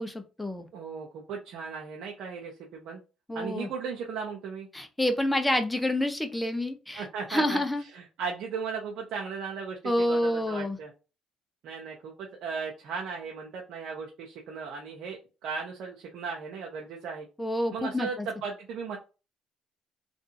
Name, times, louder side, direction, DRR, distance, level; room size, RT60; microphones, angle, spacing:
voice 1, 0.0-0.7 3.3-3.7 4.7-7.0 7.3-7.8 9.8-10.8 17.4-18.3, left 1 dB, 10° left, 6 dB, 0.8 m, -28 dB
voice 2, 0.7-3.0 3.3-4.7 6.9-10.9 11.6-17.3 17.7-19.0, right 5 dB, 70° right, 0 dB, 0.8 m, -36 dB
3.3 x 2.6 x 2.8 m, 0.31 s
supercardioid pair, 70°, 0 cm